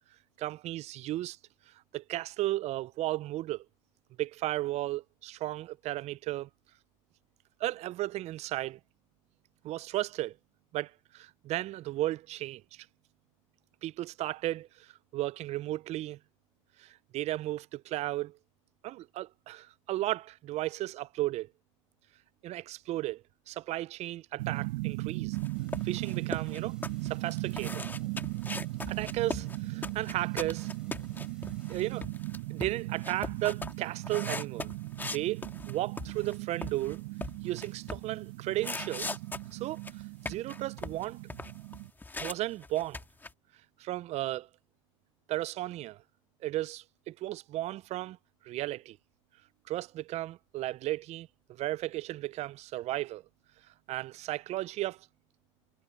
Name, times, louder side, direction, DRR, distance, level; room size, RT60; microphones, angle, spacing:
voice 1, 0.4-1.4 1.7-3.7 4.2-6.5 7.6-8.8 9.6-10.4 10.7-12.9 13.8-16.2 16.8-18.4 18.8-21.5 22.4-25.4 25.8-26.8 27.0-27.9 28.9-30.7 31.7-32.0 32.5-34.7 35.0-37.0 37.4-39.2 39.5-39.8 40.3-41.2 42.2-43.0 43.8-44.5 45.3-46.0 46.4-48.2 48.4-49.0 49.7-53.2 53.9-55.1, right 16 dB, 40° right, 0.5 m, -34 dB
sound 1, 24.4-41.9, right 21 dB, 70° right, 1.0 m, -38 dB
sound 2, 25.3-36.4 36.6-38.1 38.6-42.3 42.6-43.3, left 3 dB, 10° left, 1.9 m, -40 dB
sound 3, 25.5-32.0, right 1 dB, 5° right, 3.4 m, -59 dB
supercardioid pair, 110°, 17 cm